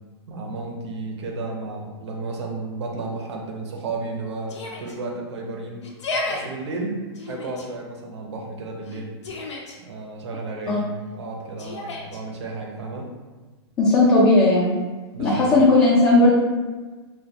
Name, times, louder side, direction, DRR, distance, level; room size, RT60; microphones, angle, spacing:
voice 1, 0.3-5.8 6.3-9.1 9.8-13.1 15.1-15.5, right 3 dB, 75° right, 1 dB, 0.6 m, -33 dB
Yell, 4.5-5.0 5.8-6.4 7.1-7.7 8.8-9.8 11.6-12.2, left 2 dB, 90° left, 0.5 m, -32 dB
voice 2, 13.8-14.7 15.2-16.3, left 2 dB, 20° left, -6 dB, 0.4 m, -16 dB
2.1 x 2.1 x 2.7 m, 1.3 s
hypercardioid pair, 140°, 14 cm